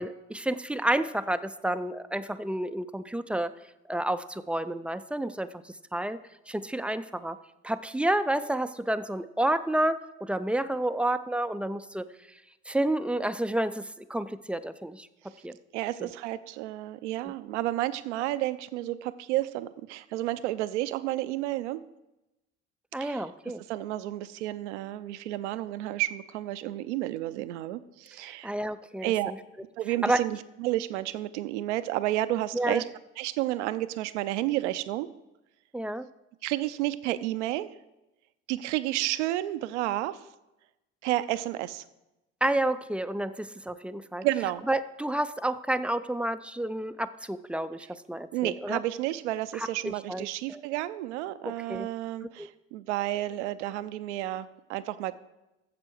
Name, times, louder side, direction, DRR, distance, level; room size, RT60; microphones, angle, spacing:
voice 1, 0.0-3.5 3.9-6.2 6.5-7.4 7.6-12.0 12.7-15.1 15.4-15.6 16.0-16.1 22.9-23.6 28.2-29.4 30.0-30.2 32.5-32.8 35.7-36.1 42.4-44.3 44.7-48.8 49.5-50.6 51.4-51.9 52.4-52.5, right 1 dB, 5° right, 12 dB, 0.4 m, -30 dB
voice 2, 15.7-21.8 23.0-23.2 23.7-28.5 29.0-29.3 29.8-32.8 33.2-35.1 36.4-37.7 38.5-40.2 41.0-41.8 44.2-44.6 48.3-55.1, right 15 dB, 70° right, 14 dB, 0.6 m, -31 dB
12.5 x 7.6 x 4.5 m, 0.96 s
figure-of-eight pair, 55°, 37 cm